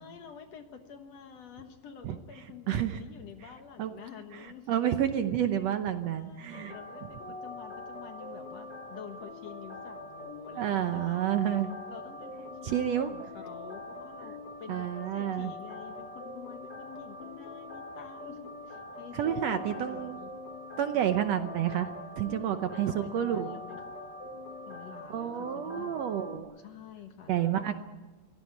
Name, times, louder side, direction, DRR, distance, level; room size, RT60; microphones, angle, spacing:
voice 1, 0.0-4.8 6.0-11.3 11.9-14.9 15.1-20.3 22.4-24.0 24.7-26.1 26.6-27.7, left 7 dB, 55° left, 6 dB, 2.2 m, -48 dB
voice 2, 2.7-3.0 3.8-3.9 4.3-6.7 10.6-11.7 12.6-13.1 14.7-15.5 19.1-20.2 20.8-23.6 25.1-26.5 27.3-27.7, right 10 dB, 70° right, 8 dB, 1.6 m, -30 dB
sound 1, 6.5-26.4, left 2 dB, 30° left, 3.9 m, -43 dB
23.0 x 16.5 x 9.6 m, 1.2 s
omnidirectional pair, 3.9 m